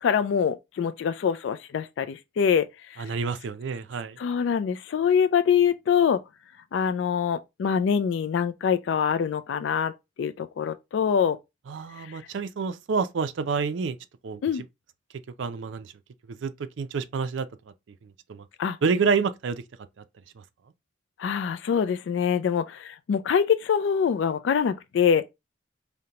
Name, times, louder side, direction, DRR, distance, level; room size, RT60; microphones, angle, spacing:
voice 1, 0.0-3.1 4.2-6.2 6.7-9.9 10.2-11.4 12.0-12.3 14.4-14.6 18.6-18.8 21.2-25.3, left 7 dB, 70° left, 0.3 m, -24 dB
voice 2, 3.0-4.2 11.7-14.0 14.2-14.6 15.4-15.9 16.4-16.5 16.8-17.5 18.0-18.4 18.8-19.6 20.0-20.1, right 5 dB, 75° right, 0.4 m, -28 dB
5.1 x 2.1 x 2.8 m
head